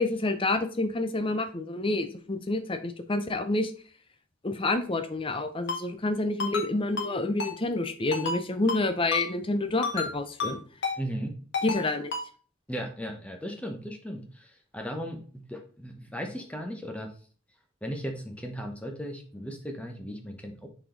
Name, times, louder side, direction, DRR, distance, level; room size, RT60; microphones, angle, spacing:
voice 1, 0.0-3.7 4.4-10.6 11.6-12.1, left 2 dB, 25° left, 8 dB, 0.7 m, -28 dB
Ringtone, 5.7-5.8 6.4-6.7 7.0-7.1 7.4-7.5 8.1-8.4 8.7-8.8 9.1-9.2 9.8-10.1 10.4-10.5 10.8-11.0 11.5-11.8 12.1-12.2, left 4 dB, 55° left, 1.2 m, -30 dB
voice 2, 11.0-11.4 12.7-17.1 17.8-20.7, equal, 5° left, 3 dB, 1.0 m, -37 dB
7.4 x 4.2 x 3.9 m, 0.41 s
head